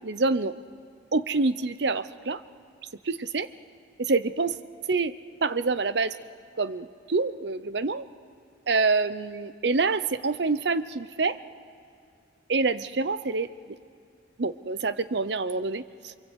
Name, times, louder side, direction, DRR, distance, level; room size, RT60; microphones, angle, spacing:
voice 1, 0.0-0.6 1.1-2.4 3.0-3.5 4.0-4.6 4.9-5.1 5.4-6.2 6.6-8.1 8.7-11.4 12.5-13.5 14.4-16.1, right 3 dB, 70° right, 14 dB, 0.8 m, -26 dB
27.5 x 24.0 x 8.2 m, 2.4 s
head